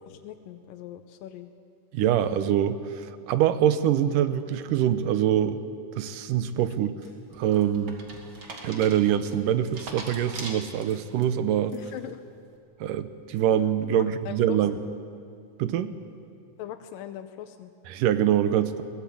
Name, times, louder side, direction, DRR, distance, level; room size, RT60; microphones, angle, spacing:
voice 1, 0.0-1.5 6.8-6.9 11.7-12.2 13.9-14.6 16.6-17.7, left 12 dB, 90° left, 8 dB, 2.5 m, -40 dB
voice 2, 1.9-5.6 5.9-6.9 7.4-8.0 8.6-11.7 12.8-14.8 15.6-15.9 17.9-18.8, right 10 dB, 80° right, 12 dB, 2.5 m, -24 dB
sound 1, 7.0-11.2 11.7-12.1, right 3 dB, 40° right, 2.8 m, -41 dB
22.0 x 18.0 x 8.6 m, 2.5 s
omnidirectional pair, 3.9 m